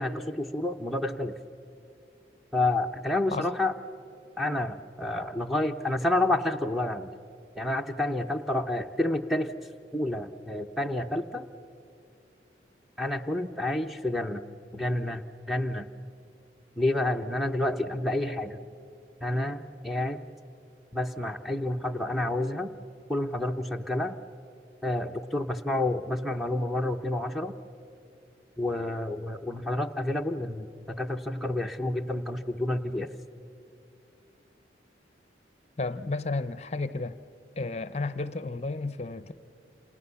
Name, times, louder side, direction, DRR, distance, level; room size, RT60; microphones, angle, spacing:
voice 1, 0.0-1.3 2.5-3.7 4.4-7.1 7.6-9.5 9.9-11.5 13.0-14.4 14.7-15.9 16.8-18.6 19.2-20.2 20.9-22.7 23.1-24.1 24.8-27.5 28.6-33.1, left 1 dB, ahead, 1 dB, 0.7 m, -29 dB
voice 2, 35.8-37.2 37.6-39.3, left 3 dB, 35° left, 13 dB, 0.7 m, -32 dB
28.5 x 27.0 x 7.0 m, 2.6 s
head